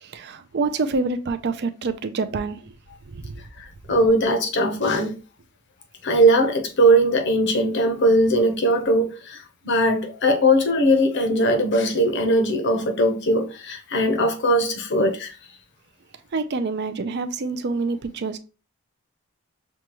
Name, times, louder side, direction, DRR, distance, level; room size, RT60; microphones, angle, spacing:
voice 1, 0.0-2.7 3.1-3.4 16.3-18.4, right 3 dB, 50° right, 0.4 m, -27 dB
voice 2, 3.6-5.2 6.0-15.4, right 1 dB, 50° left, 0.8 m, -20 dB
6.2 x 2.3 x 3.0 m
head